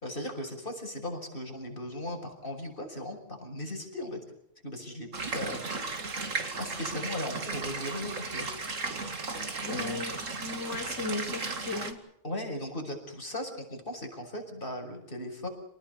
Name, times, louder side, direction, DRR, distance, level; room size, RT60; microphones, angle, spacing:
voice 1, 0.0-4.2 4.6-5.6 6.2-8.5 9.6-10.0 12.2-15.5, left 1 dB, 45° left, 3 dB, 6.4 m, -37 dB
sound 1, 5.1-11.9, right 3 dB, 85° right, 2.6 m, -35 dB
voice 2, 9.7-12.0, left 4 dB, 70° left, 1 dB, 3.8 m, -36 dB
29.0 x 19.5 x 7.0 m, 0.77 s
omnidirectional pair, 1.3 m